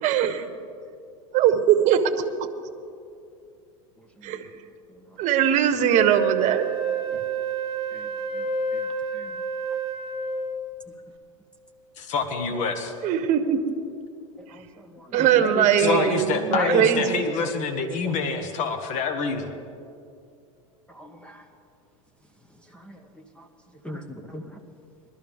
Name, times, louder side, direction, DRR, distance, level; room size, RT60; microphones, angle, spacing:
voice 1, 0.0-0.4 1.3-2.1 4.2-4.4 5.2-6.6 13.0-13.6 15.1-17.2, right 9 dB, 45° right, 9 dB, 1.1 m, -20 dB
Wind instrument woodwind instrument, 5.9-10.7, right 5 dB, 25° right, 1.3 m, -29 dB
voice 2, 12.0-12.9 15.8-19.5, left 5 dB, 45° left, 7 dB, 1.3 m, -27 dB
voice 3, 15.0-16.0 16.5-16.8 18.0-18.1 20.9-21.4 22.7-23.0 23.4-23.5 23.8-24.6, left 1 dB, 5° left, 6 dB, 0.8 m, -31 dB
20.5 x 12.5 x 3.6 m, 2.4 s
hypercardioid pair, 115°, 18 cm